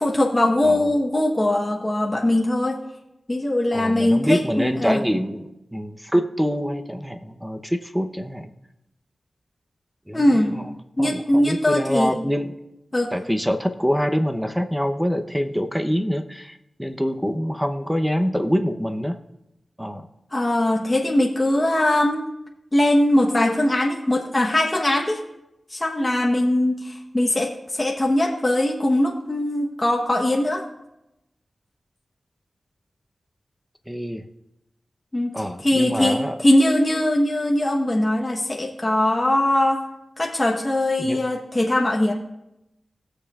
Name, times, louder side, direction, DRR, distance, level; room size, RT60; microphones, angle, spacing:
voice 1, 0.0-2.8 3.3-5.0 10.1-10.6 11.0-12.1 12.9-13.1 20.3-22.2 22.7-25.2 25.7-30.6 35.1-35.3 35.6-39.8 40.2-42.1, left 1 dB, 25° left, -1 dB, 1.1 m, -21 dB
voice 2, 3.7-8.5 10.1-12.5 13.1-19.2 19.8-20.1 33.9-34.3 35.3-36.4 41.0-41.2, equal, 5° right, 7 dB, 0.8 m, -25 dB
20.0 x 6.7 x 2.5 m, 0.91 s
cardioid pair, 60°, 0 cm